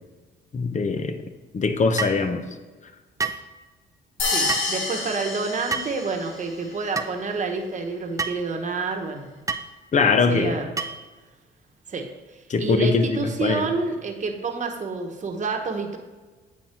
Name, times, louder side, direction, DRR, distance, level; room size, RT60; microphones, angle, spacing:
voice 1, 0.5-1.2 1.5-2.4 9.9-10.6 12.5-13.7, left 4 dB, 35° left, 8 dB, 0.8 m, -22 dB
sound 1, 2.0-2.2 3.2-3.5 4.5-4.7 5.7-6.0 7.0-7.1 8.2-8.4 9.5-9.7 10.8-11.1, right 4 dB, 15° right, 0.5 m, -28 dB
sound 2, 4.2-6.5, left 3 dB, 75° left, 1.2 m, -28 dB
voice 2, 4.3-9.4 10.3-10.8 11.9-16.0, right 4 dB, 40° right, 3 dB, 1.1 m, -29 dB
9.0 x 4.1 x 4.4 m, 1.3 s
cardioid pair, 90°, 20 cm